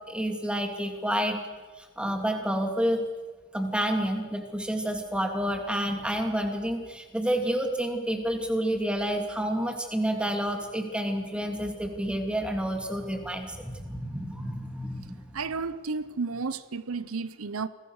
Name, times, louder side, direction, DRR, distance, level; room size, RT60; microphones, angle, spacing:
voice 1, 0.1-1.4 1.8-3.0 3.5-15.4, equal, 5° right, 2.8 m, -29 dB
voice 2, 15.3-17.7, right 4 dB, 85° right, 0.8 m, -32 dB
29.0 x 21.5 x 6.5 m
head